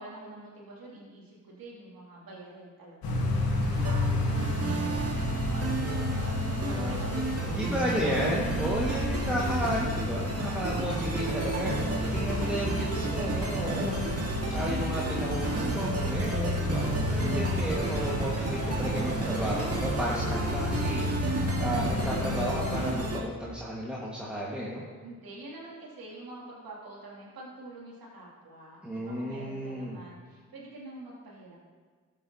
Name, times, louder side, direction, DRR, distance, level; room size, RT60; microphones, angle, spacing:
voice 1, 0.0-4.9 5.5-8.2 12.2-13.6 16.6-16.7 25.0-31.6, right 1 dB, 65° right, -4 dB, 2.9 m, -45 dB
sound 1, 3.0-22.9, left 1 dB, 65° left, 1.8 m, -32 dB
sound 2, 3.8-23.2, right 2 dB, 40° right, 1.8 m, -32 dB
voice 2, 7.5-24.8 28.8-30.0, equal, 5° right, -6 dB, 1.8 m, -33 dB
12.5 x 7.5 x 2.9 m, 1.5 s
hypercardioid pair, 40°, 38 cm